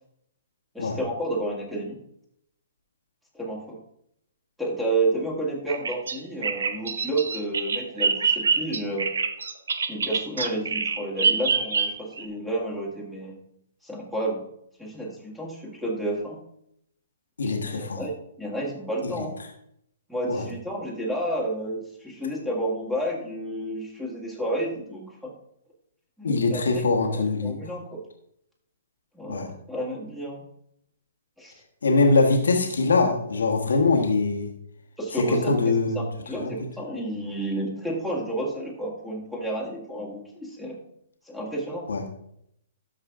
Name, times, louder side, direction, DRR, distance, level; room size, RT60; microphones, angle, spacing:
voice 1, 0.7-2.0 3.3-3.8 4.6-9.1 9.9-13.4 13.8-14.5 14.8-16.4 17.4-18.1 18.4-19.4 20.1-25.3 26.2-26.9 27.1-28.0 29.1-30.4 31.4-31.6 35.0-40.8 41.3-41.9, right 1 dB, 5° right, -2 dB, 2.0 m, -31 dB
Bird vocalization bird call bird song, 5.7-12.2, right 5 dB, 75° right, 0.8 m, -26 dB
voice 2, 17.4-18.0 20.3-20.5 26.2-27.6 29.3-29.5 31.8-34.5 35.3-36.0 36.4-36.5 41.9-42.0, left 3 dB, 80° left, 3 dB, 1.5 m, -22 dB
13.0 x 4.9 x 3.6 m, 0.73 s
hypercardioid pair, 130°, 0 cm